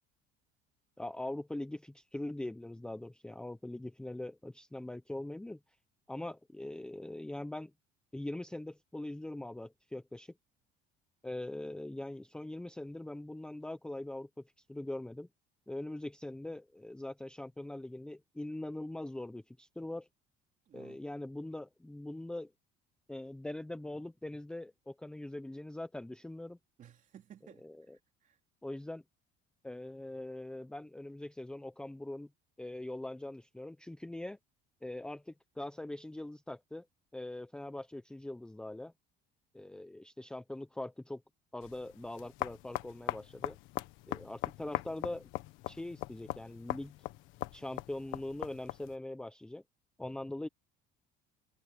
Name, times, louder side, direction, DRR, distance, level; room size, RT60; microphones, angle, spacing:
voice 1, 1.0-5.6 6.1-7.7 8.1-10.3 11.2-14.3 14.7-15.3 15.7-20.1 20.7-22.5 23.1-26.6 27.6-28.0 28.6-29.0 29.6-32.3 32.6-34.4 34.8-36.9 37.1-38.9 39.5-41.2 41.5-43.6 44.1-45.3 45.7-46.9 47.5-49.6 50.0-50.5, left 1 dB, 5° left, 0.7 m, -42 dB
voice 2, 20.7-21.0 26.8-28.4, right 9 dB, 40° right, 3.6 m, -57 dB
sound 1, 41.6-49.0, left 18 dB, 80° left, 1.3 m, -41 dB
cardioid pair, 150°, 20 cm